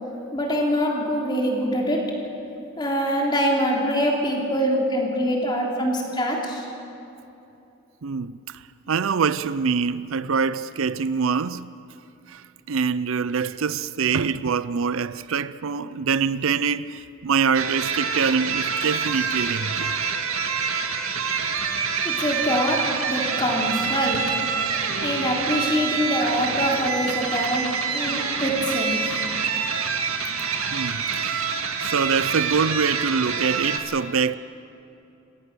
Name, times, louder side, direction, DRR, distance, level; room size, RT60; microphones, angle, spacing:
voice 1, 0.3-2.0 2.8-6.6 22.0-24.2 25.0-29.1, equal, 20° left, 3.5 m, -24 dB
voice 2, 8.0-11.7 12.3-20.0 24.7-24.8 30.7-34.4, right 5 dB, 75° right, 0.5 m, -25 dB
sound 1, 17.5-33.8, right 6 dB, 90° right, 2.0 m, -26 dB
28.0 x 16.5 x 6.9 m
head